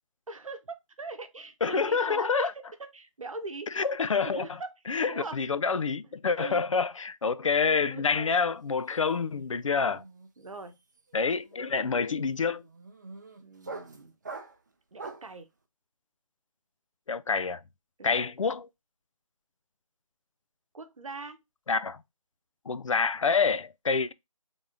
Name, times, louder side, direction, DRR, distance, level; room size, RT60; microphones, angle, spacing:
voice 1, 0.3-2.5 2.8-3.7 4.2-4.7 5.0-5.4 6.4-6.6 7.9-8.4 9.7-10.1 10.4-10.7 13.4-14.1 14.9-15.5 18.0-18.2 20.7-21.4, right 3 dB, 70° right, 0.8 m, -41 dB
voice 2, 1.6-2.5 3.8-4.5 4.9-10.0 11.1-12.6 17.1-17.6 18.0-18.7 21.7-22.0 22.7-24.1, left 5 dB, 65° left, 0.4 m, -27 dB
sound 1, 8.6-8.9 9.1-15.4, right 3 dB, 35° right, 0.5 m, -45 dB
3.6 x 3.5 x 2.6 m
figure-of-eight pair, 165°, 18 cm